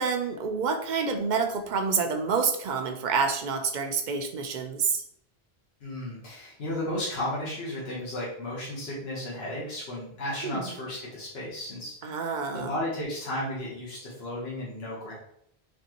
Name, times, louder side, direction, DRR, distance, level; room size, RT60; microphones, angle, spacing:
voice 1, 0.0-5.0 10.4-10.7 12.0-12.7, right 5 dB, 55° right, 5 dB, 0.6 m, -28 dB
voice 2, 5.8-15.1, left 1 dB, 75° left, -6 dB, 1.3 m, -34 dB
4.2 x 3.0 x 2.8 m, 0.70 s
omnidirectional pair, 1.1 m